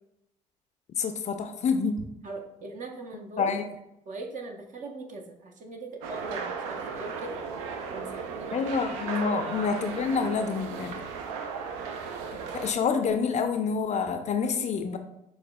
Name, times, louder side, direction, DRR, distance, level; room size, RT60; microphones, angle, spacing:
voice 1, 1.0-2.0 3.4-3.6 8.5-11.0 12.5-15.0, left 5 dB, 40° left, 7 dB, 0.4 m, -27 dB
voice 2, 2.2-3.5 4.1-7.4 7.9-8.6, right 2 dB, 50° right, 3 dB, 0.7 m, -40 dB
sound 1, 6.0-12.7, right 5 dB, 75° right, 0.4 m, -36 dB
6.6 x 2.2 x 2.2 m, 0.84 s
hypercardioid pair, 50°, 17 cm